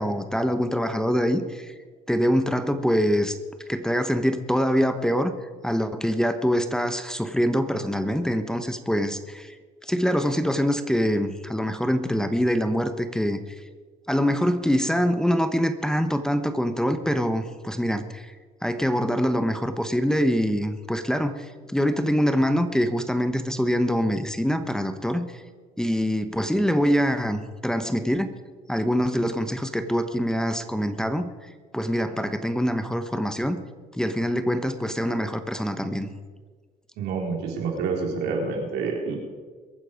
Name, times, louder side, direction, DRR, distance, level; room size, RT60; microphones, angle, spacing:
voice 1, 0.0-1.7 2.1-3.4 3.7-5.3 5.6-9.6 9.8-13.4 14.1-18.3 18.6-25.4 25.8-28.3 28.7-31.3 31.7-33.6 33.9-36.1, equal, 5° left, 9 dB, 1.0 m, -24 dB
voice 2, 37.0-39.2, right 4 dB, 85° right, 1 dB, 3.7 m, -28 dB
22.5 x 9.3 x 5.1 m, 1.5 s
cardioid pair, 110°, 17 cm